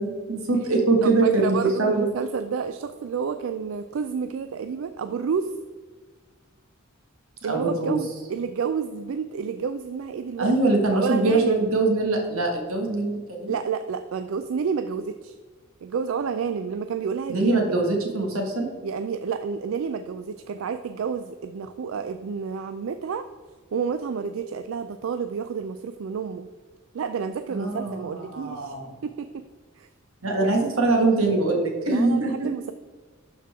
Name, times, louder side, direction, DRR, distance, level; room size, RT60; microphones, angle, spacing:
voice 1, 0.0-2.1 7.5-8.0 10.4-13.5 17.3-18.7 27.5-28.9 30.2-32.5, right 2 dB, 85° right, 1 dB, 1.7 m, -23 dB
voice 2, 1.0-5.5 7.4-10.5 10.9-11.7 13.5-15.4 15.8-17.6 18.8-23.3 23.7-26.5 26.9-28.8 29.0-29.4 29.8-29.9 30.4-30.6 31.9-32.7, right 6 dB, 70° right, 9 dB, 0.4 m, -30 dB
12.0 x 4.4 x 3.6 m, 1.5 s
head